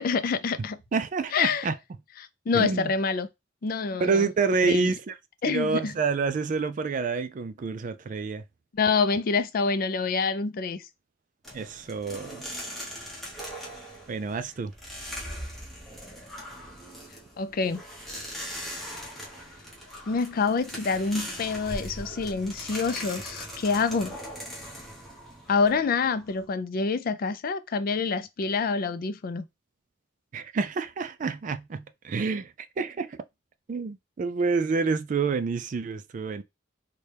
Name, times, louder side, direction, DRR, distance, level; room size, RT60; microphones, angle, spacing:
voice 1, 0.0-0.8 1.3-1.7 2.5-3.3 3.6-4.3 4.6-4.9 5.4-5.9 8.7-10.8 17.4-17.8 20.1-24.2 25.5-29.4, left 4 dB, 50° left, 0.4 m, -26 dB
voice 2, 0.9-1.7 2.5-2.9 4.0-5.1 5.4-8.4 11.5-12.5 14.1-14.7 30.3-33.2 33.7-36.4, right 4 dB, 45° right, 0.3 m, -28 dB
sound 1, 11.4-26.5, equal, ahead, 1.0 m, -40 dB
4.1 x 2.2 x 3.3 m
head